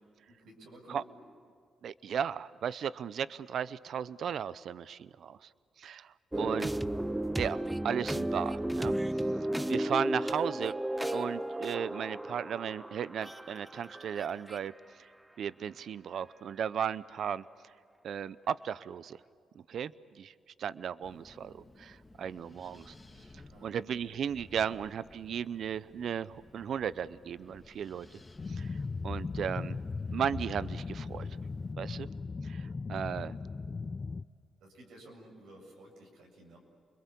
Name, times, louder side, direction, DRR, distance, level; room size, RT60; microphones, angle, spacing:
voice 1, 0.3-1.1 6.3-6.6 23.5-23.7 34.6-36.6, right 1 dB, 85° right, 0 dB, 7.5 m, -53 dB
voice 2, 1.8-5.5 5.8-6.7 7.3-8.9 9.7-10.7 11.1-14.7 15.4-17.4 18.0-19.2 19.7-19.9 20.2-20.3 20.6-22.9 23.6-28.1 28.5-28.8 29.0-29.8 30.1-31.3 31.8-32.1 32.4-33.4, right 8 dB, 70° right, 18 dB, 0.6 m, -35 dB
sound 1, 6.3-14.6, right 1 dB, 10° right, 0.8 m, -34 dB
Wind, 21.0-31.7, left 2 dB, 15° left, 2.7 m, -56 dB
sound 2, 28.4-34.2, left 4 dB, 35° left, 0.6 m, -38 dB
29.0 x 22.0 x 8.5 m, 2.2 s
cardioid pair, 85°, 0 cm